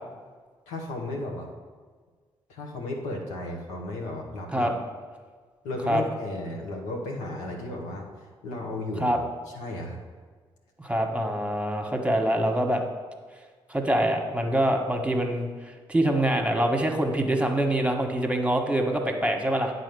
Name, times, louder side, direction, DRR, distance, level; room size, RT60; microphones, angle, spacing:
voice 1, 0.7-1.5 2.5-4.7 5.6-9.1 9.4-10.0, left 2 dB, 85° left, 0 dB, 1.2 m, -34 dB
voice 2, 10.8-12.8 13.7-15.5 15.9-19.7, right 1 dB, 10° right, 3 dB, 1.4 m, -25 dB
8.9 x 4.2 x 6.9 m, 1.5 s
hypercardioid pair, 45°, 12 cm